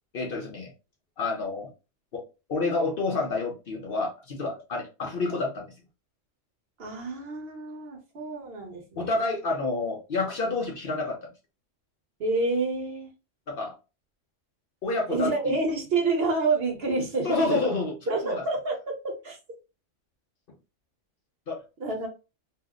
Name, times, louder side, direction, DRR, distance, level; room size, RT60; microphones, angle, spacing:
voice 1, 0.1-0.7 1.2-1.7 2.1-5.7 9.0-11.3 13.5-13.7 14.8-15.6 17.2-18.4 21.5-21.6, left 3 dB, 55° left, 0.8 m, -29 dB
voice 2, 6.8-9.1 12.2-13.1 15.1-17.7 18.1-18.8 19.2-19.4 21.8-22.1, right 3 dB, 55° right, 1.1 m, -28 dB
2.7 x 2.0 x 3.5 m
omnidirectional pair, 1.3 m